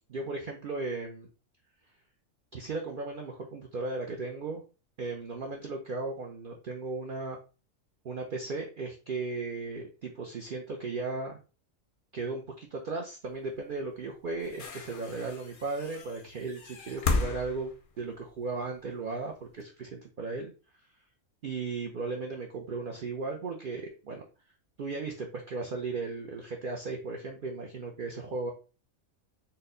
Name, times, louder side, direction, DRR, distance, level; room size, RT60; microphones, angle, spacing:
voice 1, 0.1-1.3 2.5-4.6 5.0-7.4 8.0-11.4 12.1-17.7 18.0-20.5 21.4-24.2 24.8-28.5, right 3 dB, 55° right, 1 dB, 0.6 m, -36 dB
sound 1, 13.6-13.7 14.3-18.7 19.6-19.7, left 3 dB, 55° left, 0.6 m, -34 dB
4.2 x 2.2 x 3.8 m, 0.34 s
omnidirectional pair, 1.4 m